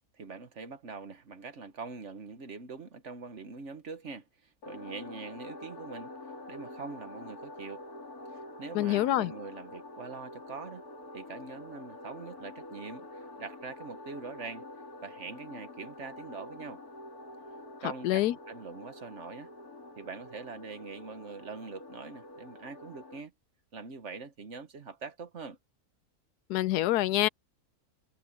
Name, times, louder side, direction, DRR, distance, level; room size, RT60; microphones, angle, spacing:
voice 1, 0.2-6.1 6.5-7.8 8.3-10.8 11.1-14.7 15.0-16.8 17.8-19.5 20.0-23.3 23.7-25.6, right 4 dB, 50° right, 1.5 m, -43 dB
sound 1, 4.6-23.2, left 2 dB, 70° left, 3.3 m, -47 dB
voice 2, 8.7-9.3 18.0-18.3 26.5-27.3, left 15 dB, 90° left, 1.2 m, -26 dB
omnidirectional pair, 1.6 m